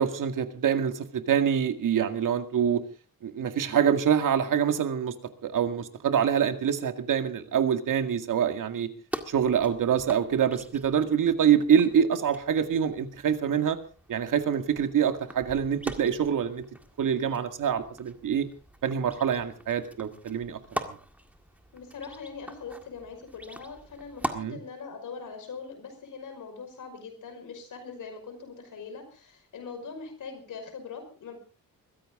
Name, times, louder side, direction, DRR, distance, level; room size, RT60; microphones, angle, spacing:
voice 1, 0.0-2.8 3.2-5.1 5.4-8.9 9.3-13.8 14.1-16.6 17.0-18.5 18.8-20.9 24.3-24.6, right 8 dB, 60° right, 8 dB, 2.1 m, -25 dB
sound 1, 9.1-24.4, right 1 dB, 5° right, 1.8 m, -42 dB
voice 2, 21.7-31.4, left 5 dB, 60° left, 6 dB, 5.4 m, -42 dB
22.5 x 15.5 x 3.7 m, 0.37 s
wide cardioid pair, 150°, 35 cm